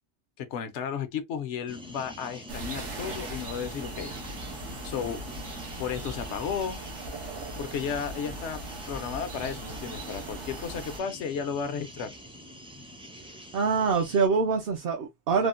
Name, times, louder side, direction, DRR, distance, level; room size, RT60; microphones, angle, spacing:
voice 1, 0.4-4.1 4.8-5.2 5.8-6.8 7.6-8.6 8.9-12.1, left 7 dB, 80° left, 1.0 m, -33 dB
sound 1, 1.7-14.3, equal, 5° right, 0.4 m, -45 dB
sound 2, 2.5-11.0, right 2 dB, 90° right, 1.3 m, -39 dB
voice 2, 13.5-15.5, right 5 dB, 60° right, 0.7 m, -25 dB
3.5 x 2.1 x 2.4 m
omnidirectional pair, 1.2 m